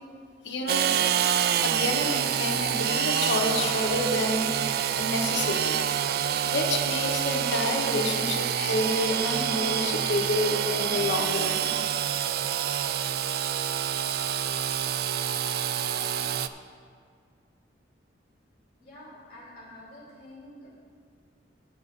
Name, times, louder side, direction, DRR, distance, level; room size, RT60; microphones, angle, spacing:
voice 1, 0.4-0.9 1.6-6.1 6.4-11.7, left 2 dB, 75° left, 2 dB, 1.1 m, -29 dB
Engine / Sawing, 0.7-16.5, right 9 dB, 55° right, 0.3 m, -27 dB
voice 2, 18.8-20.7, left 1 dB, 30° left, -6 dB, 2.8 m, -47 dB
8.7 x 8.2 x 5.2 m, 2.1 s
head